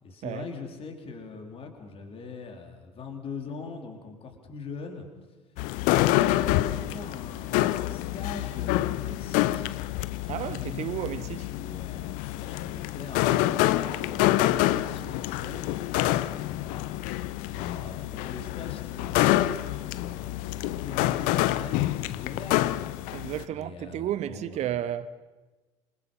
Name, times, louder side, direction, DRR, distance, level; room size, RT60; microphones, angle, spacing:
voice 1, 0.0-5.1 5.5-9.7 11.5-15.7 16.4-16.9 17.4-23.0 23.5-24.7, left 4 dB, 35° left, 4.3 m, -42 dB
sound 1, 5.6-23.4, left 15 dB, 55° left, 0.8 m, -27 dB
voice 2, 10.3-11.5 23.1-25.1, right 11 dB, 45° right, 1.0 m, -32 dB
27.5 x 26.5 x 5.8 m
figure-of-eight pair, 60°, 16 cm